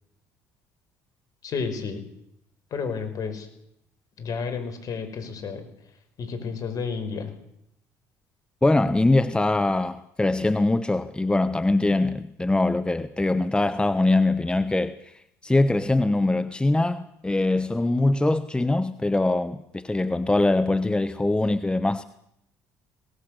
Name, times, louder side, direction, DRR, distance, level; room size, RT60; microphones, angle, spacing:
voice 1, 1.4-2.0 2.7-3.5 4.2-5.7 6.2-7.3, left 5 dB, 55° left, 5.4 m, -31 dB
voice 2, 8.6-22.0, left 2 dB, 10° left, 1.1 m, -23 dB
22.0 x 19.0 x 6.7 m
hypercardioid pair, 65°, 7 cm